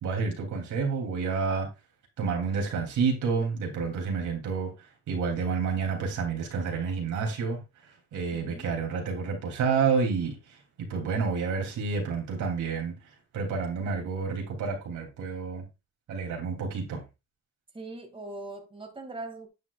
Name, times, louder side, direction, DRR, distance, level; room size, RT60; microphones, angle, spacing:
voice 1, 0.0-1.7 2.2-7.6 8.1-12.9 13.3-15.6 16.1-17.0, right 5 dB, 75° right, 2.9 m, -29 dB
voice 2, 8.1-8.7 17.7-19.5, right 2 dB, 15° right, 2.2 m, -41 dB
9.4 x 7.4 x 2.4 m
cardioid pair, 90°, 30 cm